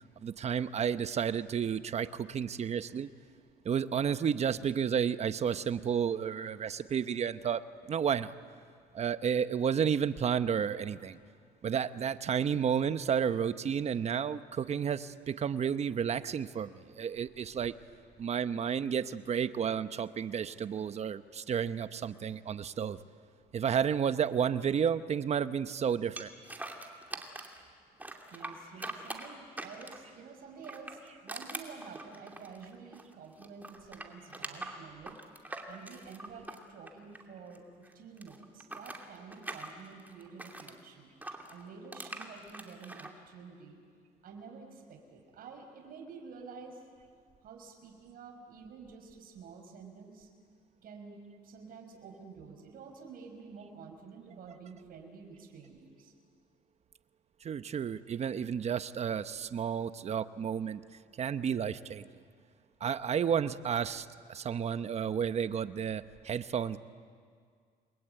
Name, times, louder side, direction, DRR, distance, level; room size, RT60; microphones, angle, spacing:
voice 1, 0.2-3.1 3.6-7.6 7.9-8.3 8.9-11.2 11.6-17.7 18.2-23.0 23.5-26.3 57.4-60.8 61.2-62.1 62.8-66.8, right 7 dB, 40° right, 12 dB, 1.0 m, -31 dB
sound 1, 26.2-27.6 28.0-30.1 30.6-33.1 33.4-37.6 37.8-40.8 41.2-43.1, right 2 dB, 10° right, 2.7 m, -43 dB
voice 2, 28.3-35.2 35.6-37.6 37.9-41.1 41.5-43.8 44.2-46.8 47.4-50.3 50.8-56.1, right 5 dB, 60° right, 3 dB, 5.3 m, -49 dB
29.5 x 22.0 x 9.1 m, 2.1 s
cardioid pair, 110°, 17 cm